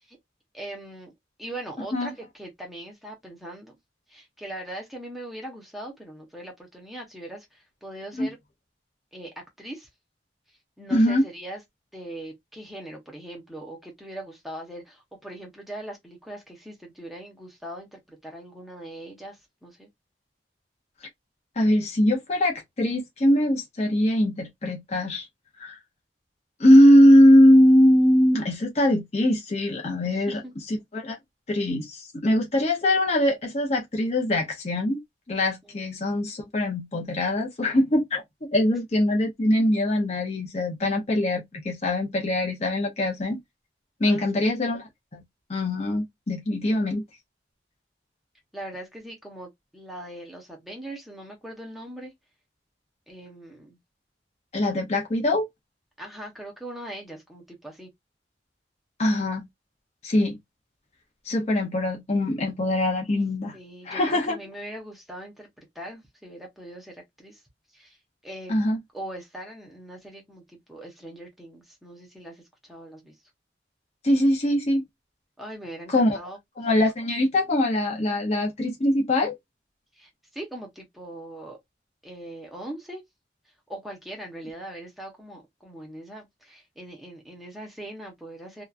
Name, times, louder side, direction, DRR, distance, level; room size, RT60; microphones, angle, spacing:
voice 1, 0.5-1.1 1.4-3.8 4.1-8.4 9.1-9.9 10.8-11.6 11.9-19.9 30.0-30.5 35.6-35.7 44.0-44.4 48.5-52.1 53.1-53.8 56.0-57.9 63.5-67.4 67.7-68.0 68.2-68.5 68.9-73.1 75.4-76.4 80.0-81.6 82.0-83.0 83.7-88.6, right 1 dB, ahead, 0.9 m, -41 dB
voice 2, 10.9-11.3 21.6-25.3 25.6-25.8 26.6-30.4 30.7-31.2 31.5-35.0 35.3-38.2 38.5-43.4 44.0-45.2 45.5-47.0 54.5-55.5 59.0-59.5 60.0-60.4 61.3-63.5 63.8-64.4 68.5-68.8 74.0-74.8 75.9-76.2 76.6-79.3, left 1 dB, 35° left, 0.7 m, -21 dB
2.9 x 2.3 x 2.4 m
head